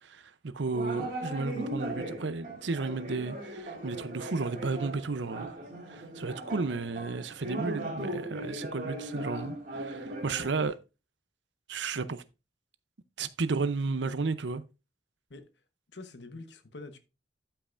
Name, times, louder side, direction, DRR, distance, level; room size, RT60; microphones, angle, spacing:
voice 1, 0.0-5.6 5.9-10.8 11.7-12.2 13.2-14.6, right 4 dB, 85° right, 0.7 m, -33 dB
sound 1, 0.7-10.7, right 1 dB, 45° right, 3.1 m, -38 dB
voice 2, 15.9-17.0, left 2 dB, 75° left, 1.1 m, -45 dB
12.5 x 5.7 x 2.5 m
head